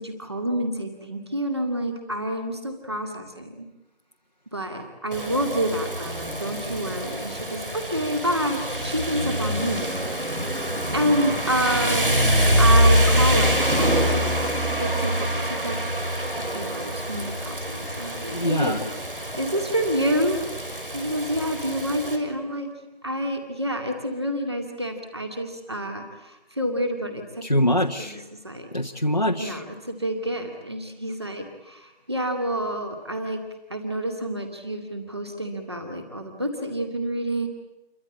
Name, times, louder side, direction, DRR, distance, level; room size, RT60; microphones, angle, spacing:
voice 1, 0.0-3.7 4.5-10.4 10.9-12.3 12.6-14.2 14.8-15.8 16.5-18.8 19.4-20.4 20.9-22.7 23.0-27.2 27.5-27.7 28.0-28.7 29.4-33.4 33.7-37.5, equal, 25° right, 4 dB, 2.2 m, -28 dB
Rain, 5.1-22.2, equal, 60° right, 6.3 m, -25 dB
voice 2, 18.3-18.9 27.4-28.2 28.7-29.6, left 1 dB, 40° left, 1 dB, 1.1 m, -24 dB
28.5 x 24.0 x 8.5 m, 0.99 s
figure-of-eight pair, 180°, 31 cm